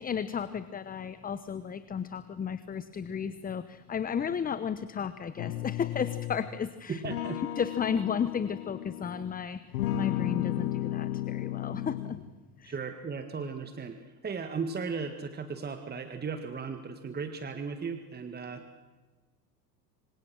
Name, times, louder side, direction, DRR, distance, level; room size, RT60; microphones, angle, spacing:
voice 1, 0.0-7.0 7.6-9.7 9.9-12.2 12.6-12.7, left 7 dB, 20° left, 15 dB, 1.0 m, -33 dB
sound 1, 5.4-6.5 7.0-9.3 9.7-12.3, left 14 dB, 70° left, 1.4 m, -34 dB
voice 2, 6.9-7.4 12.6-18.8, right 5 dB, 20° right, 8 dB, 1.9 m, -36 dB
26.0 x 26.0 x 6.4 m, 1.3 s
hypercardioid pair, 80°, 47 cm